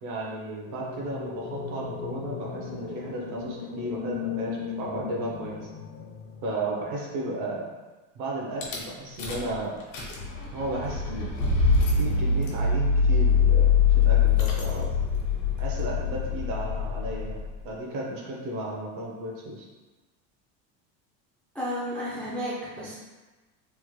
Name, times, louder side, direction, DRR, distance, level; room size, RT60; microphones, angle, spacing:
voice 1, 0.0-5.6 6.4-7.7 8.1-9.7 10.5-11.5 12.0-14.9 15.6-19.7, right 1 dB, 65° right, -2 dB, 0.9 m, -34 dB
sound 1, 0.7-6.8, left 6 dB, 60° left, 0.5 m, -37 dB
Rattle / Car / Engine starting, 8.6-8.8 9.2-9.5 9.8-17.5, left 5 dB, 80° left, 1.0 m, -24 dB
voice 2, 21.5-23.0, equal, 5° left, -8 dB, 0.3 m, -32 dB
3.4 x 2.1 x 3.1 m, 1.2 s
cardioid pair, 135°, 39 cm